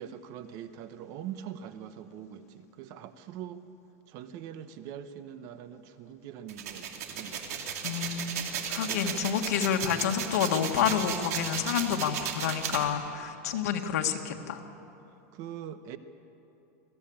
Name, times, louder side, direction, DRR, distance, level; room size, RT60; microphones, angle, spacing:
voice 1, 0.0-3.6 4.1-7.4 8.9-9.3 15.3-16.0, right 9 dB, 45° right, 11 dB, 0.9 m, -43 dB
sound 1, 6.5-12.8, right 8 dB, 75° right, 2.7 m, -35 dB
voice 2, 7.8-14.6, left 8 dB, 80° left, 4 dB, 1.8 m, -29 dB
21.5 x 14.5 x 8.7 m, 2.9 s
supercardioid pair, 150°, 8 cm